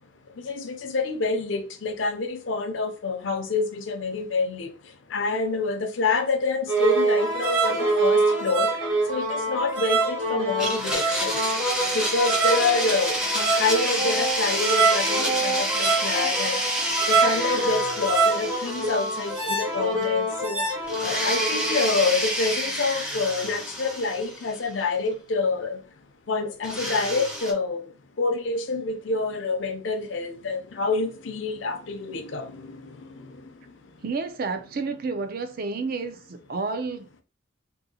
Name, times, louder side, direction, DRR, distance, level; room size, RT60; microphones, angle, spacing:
voice 1, 0.4-4.7 5.1-8.7 9.1-11.3 11.9-16.6 17.1-20.6 21.0-25.8 26.3-27.8 28.2-33.3, left 3 dB, 75° left, 0.5 m, -27 dB
sound 1, 6.7-22.1, right 2 dB, 70° right, 1.2 m, -25 dB
Domestic sounds home sounds, 10.6-19.8 20.0-20.1 20.9-24.8 26.6-27.5, equal, 5° right, 0.5 m, -29 dB
voice 2, 34.0-37.2, right 4 dB, 50° right, 0.5 m, -30 dB
2.7 x 2.6 x 2.7 m
head